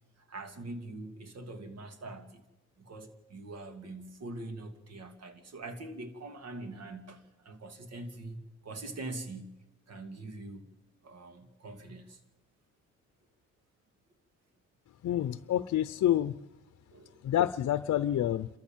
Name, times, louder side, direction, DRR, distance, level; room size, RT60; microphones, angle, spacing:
voice 1, 0.3-2.4 2.8-10.7 11.0-12.2 16.9-17.2, right 2 dB, 55° right, 2.7 m, -43 dB
voice 2, 15.0-16.3 17.2-18.5, left 11 dB, 60° left, 0.7 m, -28 dB
29.5 x 14.0 x 7.5 m
cardioid pair, 90°, 30 cm